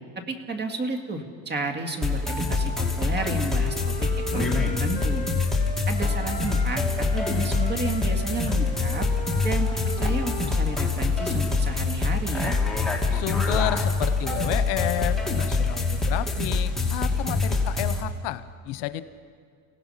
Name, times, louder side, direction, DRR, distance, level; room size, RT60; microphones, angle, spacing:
voice 1, 0.3-3.9 4.3-5.2 5.9-9.1 9.4-12.5, right 3 dB, 25° right, 5 dB, 2.2 m, -32 dB
sound 1, 2.0-18.0, left 3 dB, ahead, 2.6 m, -25 dB
Wind instrument woodwind instrument, 3.0-6.7 7.0-11.0, left 4 dB, 20° left, 3.4 m, -38 dB
voice 2, 13.1-19.0, left 14 dB, 80° left, 13 dB, 1.0 m, -31 dB
29.5 x 17.5 x 5.7 m, 2.1 s
cardioid pair, 125°, 40 cm